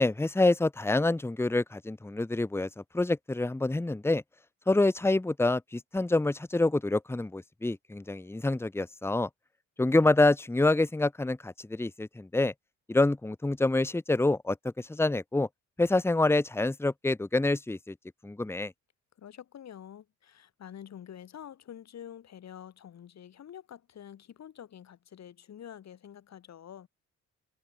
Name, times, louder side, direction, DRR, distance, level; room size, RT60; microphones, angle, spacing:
voice 1, 0.0-4.2 4.7-9.3 9.8-12.5 12.9-15.5 15.8-17.9 18.2-18.7, left 2 dB, 10° left, 1.1 m, -27 dB
voice 2, 19.2-26.9, left 9 dB, 60° left, 4.8 m, -47 dB
cardioid pair, 90°, 30 cm